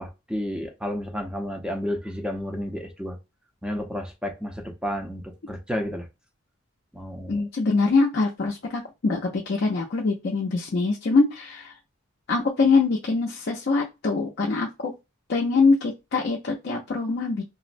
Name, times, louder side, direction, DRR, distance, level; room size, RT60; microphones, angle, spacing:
voice 1, 0.0-3.2 3.6-6.1 6.9-7.4, equal, 5° right, 0.5 m, -31 dB
voice 2, 7.3-9.2 9.5-11.7 12.3-14.9 15.3-17.4, left 3 dB, 55° left, 0.4 m, -23 dB
3.8 x 2.0 x 2.5 m
head